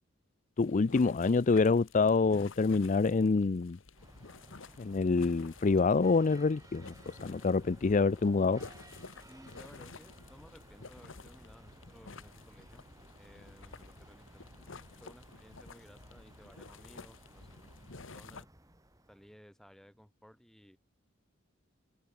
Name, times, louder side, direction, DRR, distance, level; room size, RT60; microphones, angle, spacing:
sound 1, 0.6-18.4, left 3 dB, 75° left, 1.4 m, -52 dB
voice 1, 0.6-3.8 4.8-8.6, left 4 dB, 40° left, 0.5 m, -27 dB
sound 2, 3.9-19.4, right 1 dB, 20° right, 4.2 m, -57 dB
voice 2, 9.3-12.8 13.1-17.7 17.9-18.5 19.1-20.8, equal, ahead, 7.2 m, -58 dB
open air
head